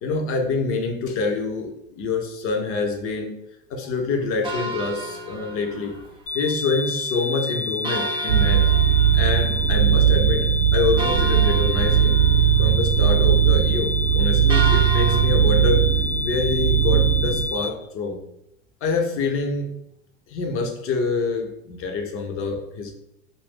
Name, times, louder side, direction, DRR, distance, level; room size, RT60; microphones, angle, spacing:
voice 1, 0.0-3.3 3.7-6.0 6.3-8.7 9.1-12.2 12.6-15.9 16.2-18.2 18.8-19.7 20.3-22.9, left 4 dB, 35° left, 4 dB, 0.7 m, -26 dB
sound 1, 4.4-6.1 6.5-6.6 6.8-6.9 7.8-9.8 10.2-10.3 11.0-12.7 14.5-15.2, right 3 dB, 15° right, 0.3 m, -32 dB
sound 2, 6.3-17.7, left 3 dB, 60° left, 0.9 m, -29 dB
sound 3, 8.3-17.5, right 9 dB, 85° right, 0.6 m, -19 dB
2.6 x 2.6 x 3.5 m, 0.80 s
figure-of-eight pair, 85°, 39 cm